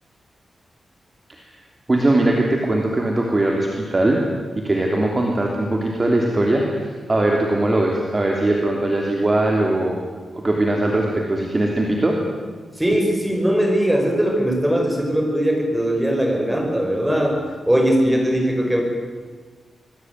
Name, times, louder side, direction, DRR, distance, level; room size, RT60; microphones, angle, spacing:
voice 1, 1.9-4.2 4.6-10.0 10.3-12.2, right 1 dB, 20° right, 0 dB, 3.1 m, -20 dB
voice 2, 12.8-18.8, equal, 5° right, 2 dB, 5.6 m, -20 dB
26.0 x 20.5 x 9.5 m, 1.5 s
wide cardioid pair, 170°, 0 cm